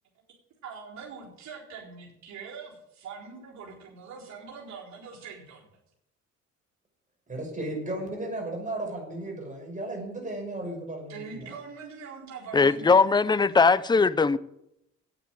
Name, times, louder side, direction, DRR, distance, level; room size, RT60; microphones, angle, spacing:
voice 1, 0.6-5.6 11.1-13.0, right 5 dB, 65° right, 4.3 m, -43 dB
voice 2, 7.3-11.6, right 1 dB, 25° right, 6.2 m, -35 dB
voice 3, 12.5-14.4, left 4 dB, 15° left, 0.6 m, -20 dB
9.4 x 9.0 x 8.2 m
cardioid pair, 90°, 30 cm